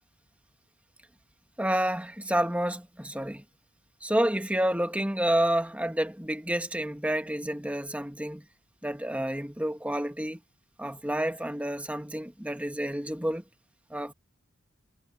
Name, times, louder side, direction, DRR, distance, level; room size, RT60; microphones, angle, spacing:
voice 1, 1.6-3.4 4.0-8.5 8.8-10.4 10.8-13.4 13.9-14.1, right 1 dB, 5° right, 1.9 m, -29 dB
head